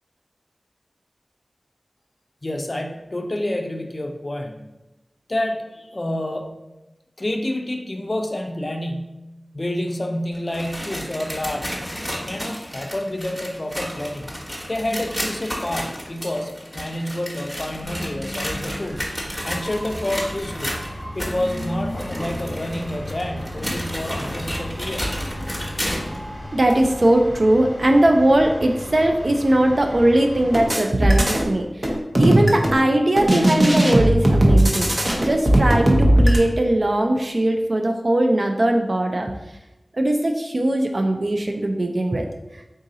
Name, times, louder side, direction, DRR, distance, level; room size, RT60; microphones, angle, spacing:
voice 1, 2.4-4.6 5.3-6.7 7.2-11.7 12.3-14.3 14.7-19.2 19.4-20.8 21.1-25.1, left 1 dB, 45° left, 3 dB, 0.4 m, -28 dB
sound 1, 10.3-26.2 26.7-26.8 27.5-27.6 28.5-28.6, equal, ahead, 1.1 m, -32 dB
sound 2, 17.8-30.7, equal, 20° left, 0.9 m, -35 dB
voice 2, 26.5-31.9 32.2-34.9 35.2-39.3 39.9-42.3 42.5-42.6, right 1 dB, 60° right, 3 dB, 0.4 m, -20 dB
sound 3, 30.5-31.5 31.8-32.8 33.2-36.4, right 1 dB, 45° right, 0.8 m, -17 dB
3.6 x 2.6 x 3.9 m, 0.99 s
wide cardioid pair, 40°, 0 cm